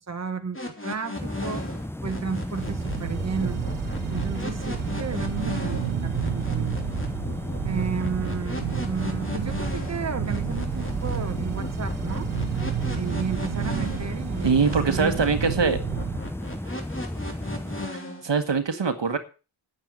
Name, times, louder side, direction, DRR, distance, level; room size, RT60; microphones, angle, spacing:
voice 1, 0.1-0.6 0.8-3.6 4.1-6.7 7.6-12.3 12.9-15.2, right 5 dB, 35° right, 7 dB, 1.4 m, -33 dB
sound 1, 0.5-18.3, left 1 dB, 25° left, 3.2 m, -36 dB
sound 2, 1.2-17.9, left 1 dB, 5° left, 0.7 m, -33 dB
sound 3, 2.5-16.2, right 10 dB, 85° right, 0.8 m, -31 dB
voice 2, 14.4-15.8 17.9-19.2, right 5 dB, 60° right, 8 dB, 1.6 m, -23 dB
9.3 x 9.2 x 6.5 m, 0.34 s
cardioid pair, 50°, 48 cm